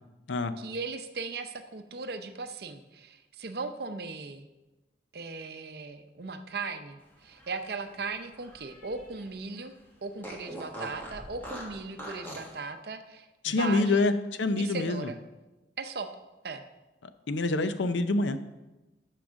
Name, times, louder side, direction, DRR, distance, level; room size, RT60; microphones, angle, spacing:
voice 1, 0.6-4.5 5.1-9.7 10.0-14.1 14.6-15.2 15.8-16.1 16.4-16.6, right 4 dB, 60° right, 8 dB, 0.6 m, -38 dB
Fart, 7.2-9.3 9.6-9.7 10.2-12.6, equal, 10° left, 1.4 m, -43 dB
voice 2, 13.4-14.1 14.4-15.1 17.3-18.4, left 2 dB, 90° left, 11 dB, 0.6 m, -26 dB
6.6 x 6.1 x 6.3 m, 1.1 s
head